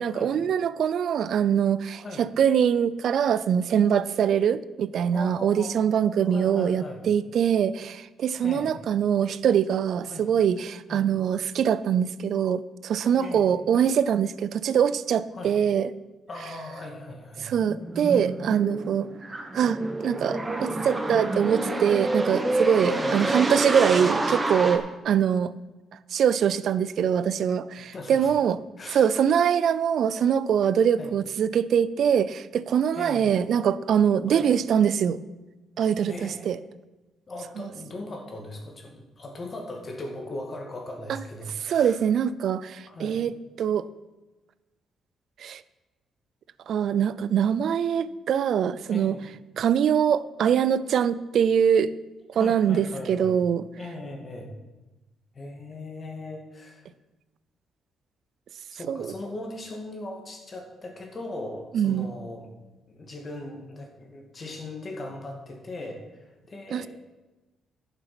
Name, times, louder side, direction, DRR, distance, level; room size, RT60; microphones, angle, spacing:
voice 1, 0.0-15.9 17.4-19.1 19.5-25.5 26.1-28.6 28.9-35.2 35.8-36.6 37.6-37.7 41.1-41.2 41.6-43.8 45.4-45.6 46.7-49.2 49.6-51.9 52.3-53.6 58.9-59.1 61.7-62.1 66.7-66.9, right 8 dB, 65° right, 17 dB, 0.5 m, -23 dB
voice 2, 1.9-2.2 5.1-5.9 6.2-7.0 8.4-8.8 10.1-10.3 10.9-11.1 13.2-13.5 15.3-15.5 16.3-17.5 22.9-23.2 27.9-28.3 28.8-29.1 31.0-31.1 32.9-33.4 34.3-34.5 36.1-36.8 37.3-42.0 42.9-43.2 48.9-49.2 52.4-53.4 53.7-54.5 55.3-56.9 58.7-62.5 62.9-66.9, left 2 dB, 40° left, 2 dB, 2.2 m, -39 dB
sound 1, 17.4-24.8, right 2 dB, 20° right, 1.2 m, -28 dB
11.0 x 7.0 x 6.0 m, 1.1 s
cardioid pair, 90°, 0 cm